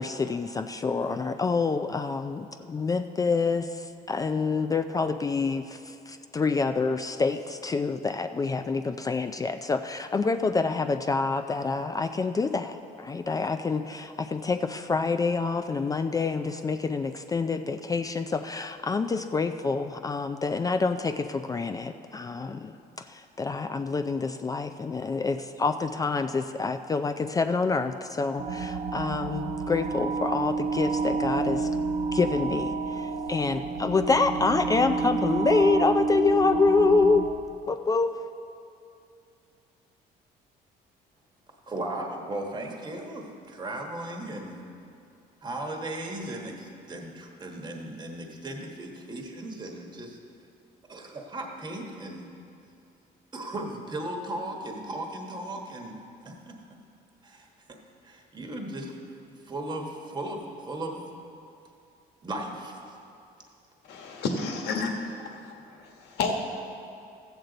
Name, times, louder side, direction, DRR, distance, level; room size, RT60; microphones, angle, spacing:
voice 1, 0.0-22.7 23.1-31.7 32.1-37.3 37.7-38.2, left 4 dB, 20° left, 7 dB, 0.3 m, -27 dB
sound 1, 28.4-37.3, right 4 dB, 65° right, 1.0 m, -29 dB
voice 2, 41.7-44.6 45.4-50.2 50.9-52.3 53.3-56.0 56.2-56.6 57.2-57.8 58.0-58.9 59.4-61.0 62.2-63.0, right 1 dB, 25° right, 1 dB, 1.2 m, -36 dB
voice 3, 63.9-66.3, left 4 dB, 80° left, 2 dB, 1.4 m, -31 dB
14.0 x 8.0 x 3.9 m, 2.6 s
cardioid pair, 110°, 17 cm